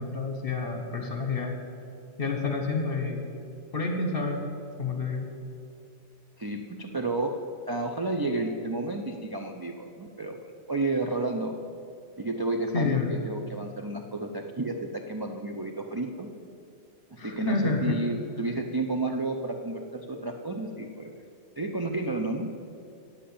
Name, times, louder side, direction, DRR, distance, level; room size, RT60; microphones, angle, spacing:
voice 1, 0.0-1.5 2.2-3.2 3.7-4.4 4.8-5.3 12.7-13.1 17.2-18.0 18.4-18.5, left 4 dB, 55° left, 3 dB, 1.5 m, -29 dB
voice 2, 6.4-7.4 7.7-10.4 10.7-11.6 12.2-16.3 17.2-21.1 21.6-22.5, right 2 dB, 30° right, 2 dB, 0.4 m, -31 dB
8.4 x 7.8 x 8.5 m, 2.5 s
omnidirectional pair, 1.2 m